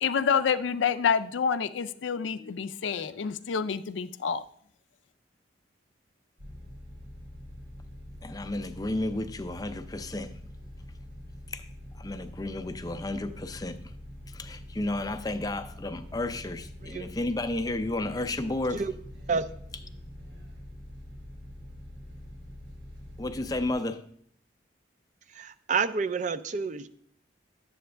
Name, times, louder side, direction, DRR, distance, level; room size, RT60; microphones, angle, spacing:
voice 1, 0.0-4.4, left 6 dB, 80° left, 0.4 m, -28 dB
sound 1, 6.4-23.7, left 1 dB, 90° right, 3.1 m, -45 dB
voice 2, 8.2-10.4 11.5-11.6 12.0-13.9 14.3-18.8 23.2-24.0, left 2 dB, 20° left, 0.5 m, -32 dB
voice 3, 25.3-26.9, right 5 dB, 40° right, 0.4 m, -29 dB
11.5 x 7.8 x 3.3 m
head